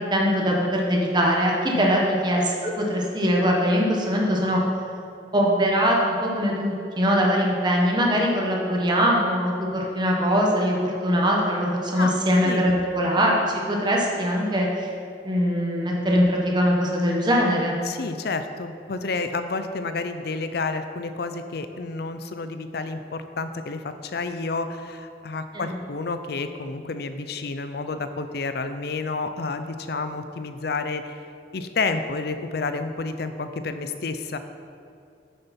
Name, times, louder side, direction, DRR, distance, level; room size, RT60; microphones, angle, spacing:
voice 1, 0.0-4.6 5.3-13.3 13.7-14.9 15.2-17.7 25.5-25.7, equal, 25° right, -2 dB, 1.3 m, -22 dB
voice 2, 12.0-12.7 17.8-31.2 31.5-34.4, left 3 dB, 55° left, 9 dB, 0.5 m, -30 dB
9.2 x 6.8 x 4.3 m, 2.5 s
head